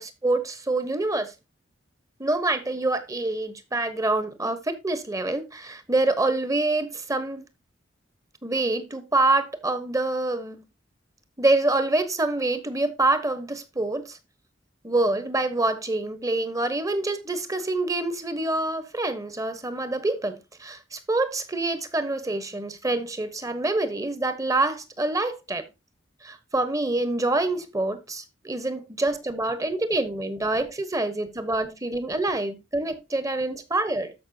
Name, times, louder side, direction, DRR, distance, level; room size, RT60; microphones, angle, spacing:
voice 1, 0.0-1.3 2.2-7.4 8.4-10.6 11.4-14.2 14.8-25.6 26.2-34.1, right 2 dB, 20° right, 1.2 m, -26 dB
13.5 x 5.7 x 2.8 m
head